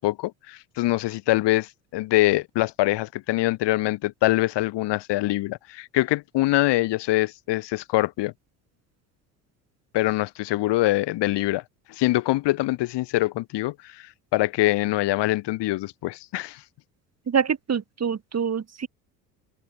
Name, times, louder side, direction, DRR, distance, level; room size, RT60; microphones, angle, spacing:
voice 1, 0.0-8.3 9.9-11.6 11.9-16.6, left 17 dB, 60° left, 5.2 m, -24 dB
voice 2, 17.3-18.9, right 7 dB, 30° right, 3.7 m, -25 dB
open air
hypercardioid pair, 65°, 48 cm